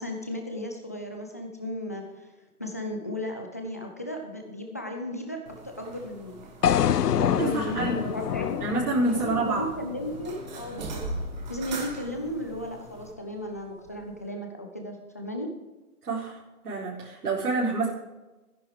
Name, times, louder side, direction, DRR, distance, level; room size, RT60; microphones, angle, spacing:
voice 1, 0.0-2.3 2.6-6.4 7.0-8.6 9.1-11.0 11.5-15.5, equal, 10° left, 2 dB, 0.5 m, -35 dB
sound 1, 5.5-13.1, right 2 dB, 30° right, 2.0 m, -41 dB
sound 2, 6.6-10.7, left 9 dB, 90° left, 0.6 m, -27 dB
voice 2, 7.2-8.1 8.6-9.6 16.0-16.4 16.6-17.9, right 2 dB, 80° right, -6 dB, 4.3 m, -27 dB
13.0 x 10.5 x 5.0 m, 1.1 s
hypercardioid pair, 155°, 45 cm